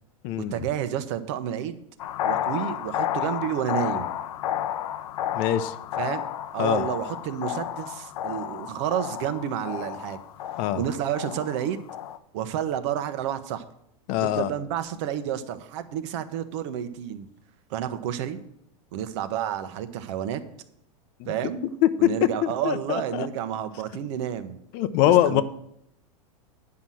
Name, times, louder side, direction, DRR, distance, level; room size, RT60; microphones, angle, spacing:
voice 1, 0.4-1.8 2.2-4.1 6.0-6.2 6.5-10.2 10.7-11.8 12.3-13.6 14.2-17.3 17.7-18.4 18.9-20.4 21.3-21.6 22.0-24.6 25.0-25.4, right 10 dB, 55° right, 11 dB, 1.0 m, -30 dB
sound 1, 2.0-12.2, left 11 dB, 75° left, 0.7 m, -31 dB
voice 2, 5.3-5.7 6.6-6.8 10.6-10.8 14.1-14.5 21.2-21.3 21.8-22.1 22.4-23.3 24.7-25.4, left 13 dB, 40° left, 13 dB, 0.7 m, -23 dB
9.8 x 5.8 x 7.6 m, 0.74 s
supercardioid pair, 155°, 19 cm